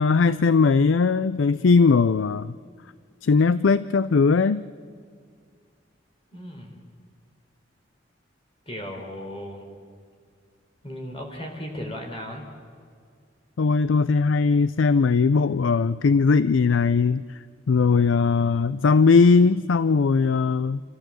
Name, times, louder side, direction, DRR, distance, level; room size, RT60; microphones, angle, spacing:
voice 1, 0.0-2.5 3.2-4.6 13.6-17.4 17.7-20.8, left 4 dB, 85° left, 16 dB, 0.5 m, -19 dB
voice 2, 6.3-6.8 8.7-9.7 10.8-12.4, equal, 30° left, 2 dB, 3.9 m, -36 dB
29.5 x 14.0 x 7.6 m, 2.1 s
head